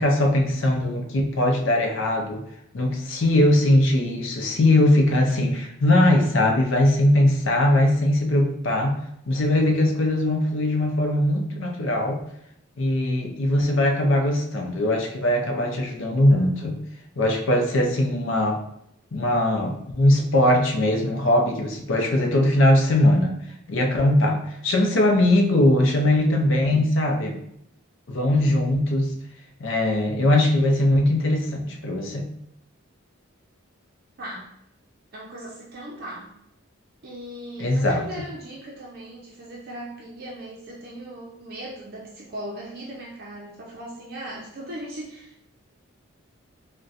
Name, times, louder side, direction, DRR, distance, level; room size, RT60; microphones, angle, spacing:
voice 1, 0.0-2.4 2.7-9.0 9.3-12.2 12.8-16.8 17.2-18.6 19.1-23.3 23.7-27.4 28.1-29.1 29.6-32.3 37.6-38.0, left 1 dB, 65° left, 2 dB, 0.5 m, -20 dB
voice 2, 35.1-36.3 37.0-45.5, right 1 dB, 45° right, -4 dB, 0.5 m, -38 dB
3.9 x 2.2 x 2.5 m, 0.76 s
head